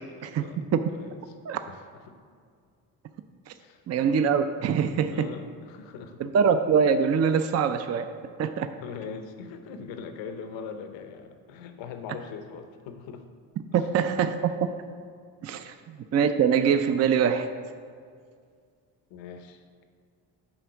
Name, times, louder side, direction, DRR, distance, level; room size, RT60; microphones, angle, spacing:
voice 1, 0.0-0.6 0.9-1.2 1.7-2.2 3.6-3.8 5.1-6.3 8.8-13.3 13.8-13.9 15.6-15.8 19.1-19.8, left 6 dB, 80° left, 7 dB, 0.8 m, -41 dB
voice 2, 3.9-5.3 6.2-8.1 8.4-8.7 13.7-14.5 15.4-17.5, right 7 dB, 35° right, 9 dB, 0.5 m, -23 dB
7.9 x 4.2 x 5.7 m, 2.1 s
supercardioid pair, 65°, 44 cm